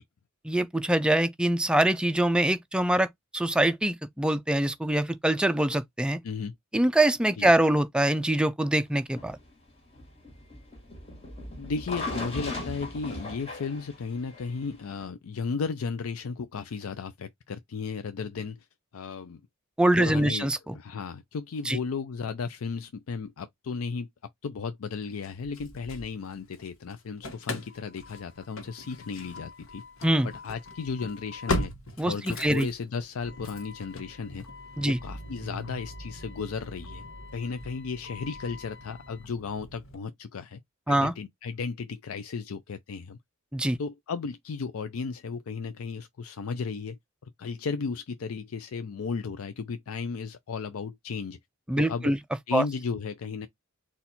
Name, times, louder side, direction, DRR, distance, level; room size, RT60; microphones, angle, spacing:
voice 1, 0.4-3.1 3.3-6.2 6.7-9.4 19.8-20.8 21.6-21.8 30.0-30.3 32.0-32.7 34.8-35.0 40.9-41.1 43.5-43.8 51.7-52.2 52.5-52.6, right 1 dB, 5° right, 0.3 m, -24 dB
sound 1, 9.1-15.0, left 2 dB, 30° left, 1.5 m, -38 dB
voice 2, 11.6-18.7 18.9-19.4 20.0-20.5 20.7-24.1 24.4-29.8 30.2-31.7 32.0-34.5 34.8-37.0 37.3-40.6 40.9-43.2 43.8-47.0 47.4-51.4 51.8-52.1 52.5-53.5, left 5 dB, 90° left, 0.4 m, -34 dB
Engine starting / Slam, 25.2-26.6 26.9-39.9, left 2 dB, 70° left, 1.1 m, -39 dB
4.2 x 2.3 x 4.1 m
head